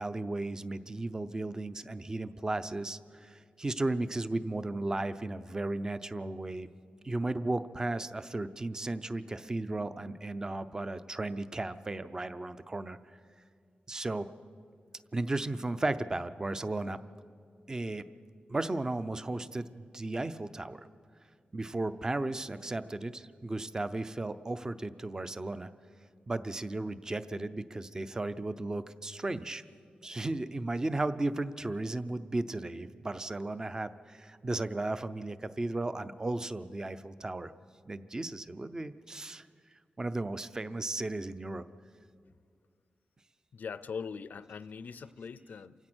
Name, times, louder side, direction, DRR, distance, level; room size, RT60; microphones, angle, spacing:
voice 1, 0.0-6.7 7.0-13.0 13.9-14.3 15.1-17.0 17.7-18.1 18.5-20.9 21.5-25.7 26.3-29.6 30.0-37.5 37.9-39.5 40.0-41.6, right 2 dB, 20° right, 13 dB, 0.6 m, -35 dB
voice 2, 43.5-45.7, left 6 dB, 65° left, 16 dB, 0.5 m, -41 dB
27.5 x 16.5 x 6.2 m, 2.2 s
wide cardioid pair, 165°, 3 cm